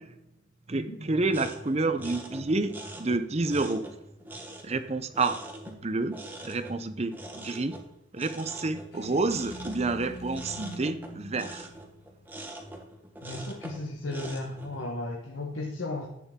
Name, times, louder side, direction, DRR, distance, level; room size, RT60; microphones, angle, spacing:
voice 1, 0.7-3.9 4.6-5.4 5.7-7.8 8.1-11.7, right 3 dB, 35° right, 11 dB, 0.6 m, -29 dB
sound 1, 1.3-14.8, right 1 dB, 10° right, 1.2 m, -44 dB
sound 2, 8.9-12.8, left 1 dB, 55° left, 0.6 m, -44 dB
voice 2, 13.2-16.1, left 2 dB, 85° left, -1 dB, 1.3 m, -35 dB
11.5 x 7.7 x 3.7 m, 0.86 s
head